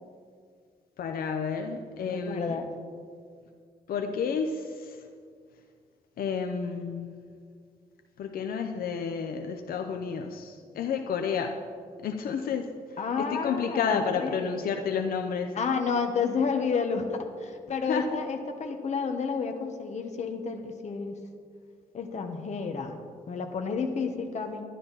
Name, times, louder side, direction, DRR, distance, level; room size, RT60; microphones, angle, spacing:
voice 1, 1.0-2.6 3.9-5.0 6.2-7.1 8.2-11.6 12.0-12.7 13.2-15.5 17.9-18.1, left 6 dB, 80° left, 5 dB, 0.7 m, -30 dB
voice 2, 2.0-2.7 13.0-14.7 15.5-21.1 21.9-23.0 23.3-24.6, left 5 dB, 50° left, 5 dB, 1.1 m, -31 dB
12.0 x 11.5 x 4.0 m, 2.1 s
wide cardioid pair, 140°, 15 cm